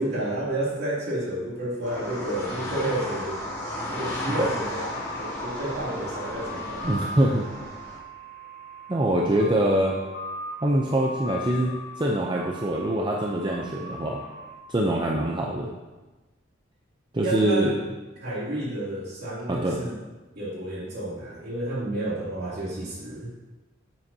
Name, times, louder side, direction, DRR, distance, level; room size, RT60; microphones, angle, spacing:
voice 1, 0.0-3.4 3.9-6.9 17.2-17.8 18.2-19.9 20.3-23.3, right 1 dB, 55° right, -7 dB, 2.8 m, -31 dB
sound 1, 1.8-8.0, left 1 dB, 20° left, 2.5 m, -34 dB
sound 2, 4.9-14.6, equal, 55° left, 2.5 m, -40 dB
voice 2, 6.8-7.5 8.9-10.0 10.6-14.2 14.7-15.7 17.1-17.7 19.5-19.8, right 1 dB, 25° right, -1 dB, 0.6 m, -24 dB
9.8 x 7.7 x 2.8 m, 1.2 s
head